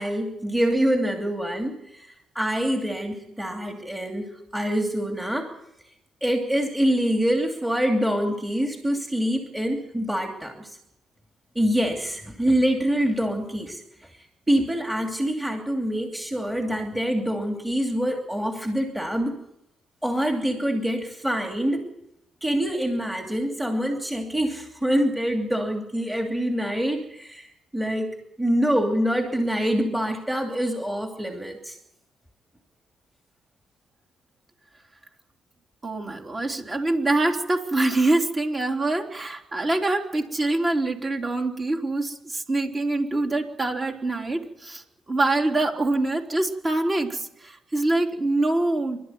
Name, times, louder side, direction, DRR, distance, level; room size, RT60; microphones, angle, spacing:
voice 1, 0.0-5.5 6.2-10.8 11.5-13.8 14.5-19.4 20.0-21.9 22.4-27.5 27.7-28.1 28.4-31.8, equal, 10° right, 3 dB, 2.8 m, -25 dB
voice 2, 35.8-49.0, right 2 dB, 30° right, 2 dB, 3.8 m, -25 dB
26.5 x 12.5 x 9.5 m, 0.82 s
cardioid pair, 90°, 0 cm